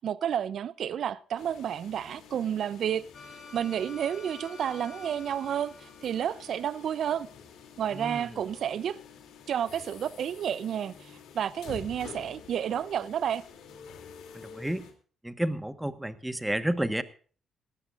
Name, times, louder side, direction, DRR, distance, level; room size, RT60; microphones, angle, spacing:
voice 1, 0.0-3.0 3.5-7.3 7.8-9.0 9.5-13.4, right 9 dB, 65° right, 0.6 m, -31 dB
sound 1, 1.4-14.9, left 6 dB, 85° left, 2.8 m, -49 dB
sound 2, 3.1-7.0, left 4 dB, 50° left, 7.6 m, -49 dB
voice 2, 7.9-8.4 14.3-14.9 15.2-17.0, right 1 dB, 5° right, 1.3 m, -31 dB
19.0 x 14.0 x 2.5 m
cardioid pair, 90°, 0 cm